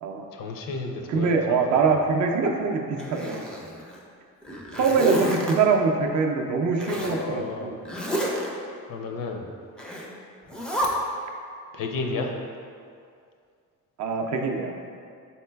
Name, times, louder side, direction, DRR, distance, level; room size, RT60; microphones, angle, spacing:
voice 1, 0.3-1.8 6.8-7.7 8.9-9.5 11.7-12.3, left 3 dB, 65° left, 3 dB, 0.5 m, -32 dB
voice 2, 1.1-3.5 4.7-7.8 14.0-14.7, right 4 dB, 55° right, 2 dB, 0.5 m, -23 dB
Zipper (clothing), 3.0-4.0 4.4-5.5 6.8-7.2 7.8-8.5 9.8-10.1 10.5-10.9, equal, 5° left, 0.3 m, -30 dB
4.2 x 3.8 x 2.2 m, 2.3 s
cardioid pair, 105°, 35 cm